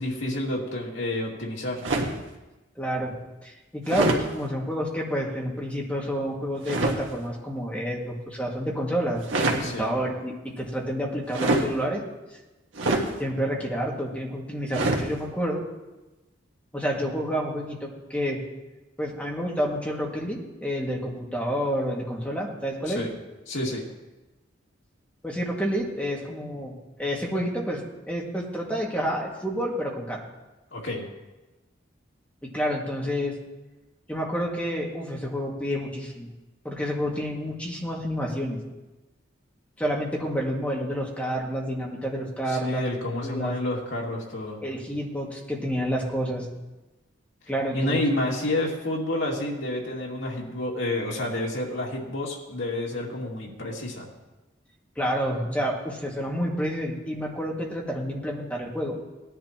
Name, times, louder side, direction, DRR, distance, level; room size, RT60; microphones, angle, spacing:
voice 1, 0.0-1.8 9.6-9.9 22.9-23.1 23.5-23.8 30.7-31.0 42.5-44.6 47.7-54.1, left 1 dB, 75° left, -2 dB, 2.4 m, -29 dB
sound 1, 1.8-2.2 3.9-4.2 6.6-7.0 9.2-9.7 11.3-11.7 12.8-13.1 14.7-15.1, right 2 dB, 80° right, 1.6 m, -24 dB
voice 2, 2.8-3.1 3.4-12.0 13.2-15.6 16.7-18.4 19.0-23.0 25.2-27.8 28.1-30.2 32.4-33.3 34.1-36.3 36.6-38.6 39.8-42.8 43.2-43.5 44.6-46.5 47.5-48.0 55.0-59.0, equal, 5° left, -2 dB, 2.1 m, -29 dB
18.5 x 10.5 x 3.0 m, 1.1 s
head